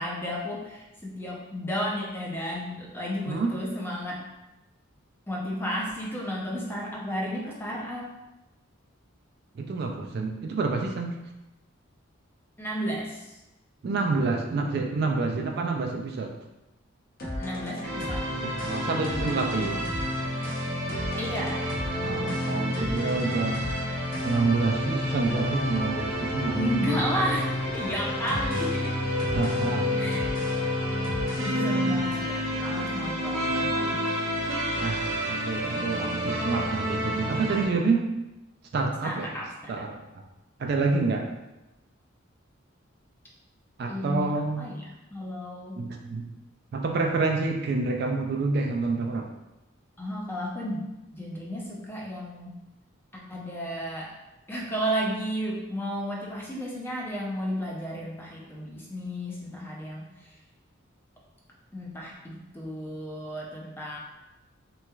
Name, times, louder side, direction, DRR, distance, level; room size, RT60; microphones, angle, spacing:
voice 1, 0.0-4.2 5.3-8.1 12.6-13.4 17.4-18.2 21.2-21.6 26.5-29.0 30.0-30.2 31.4-34.1 39.0-39.9 43.9-45.8 50.0-52.5 53.1-54.1 54.5-60.3 61.7-64.0, equal, 10° left, -3 dB, 0.5 m, -33 dB
voice 2, 9.6-11.1 13.8-16.3 18.4-19.8 22.0-23.6 24.2-26.6 29.3-30.1 34.8-38.0 38.7-39.4 39.7-40.0 40.6-41.3 43.8-44.7 45.8-46.3 46.7-49.3, right 3 dB, 50° right, 3 dB, 0.3 m, -28 dB
sound 1, 17.2-32.0, left 1 dB, 45° left, 0.7 m, -32 dB
sound 2, 17.8-37.7, equal, 85° right, 0.8 m, -31 dB
3.3 x 3.0 x 2.3 m, 0.98 s
head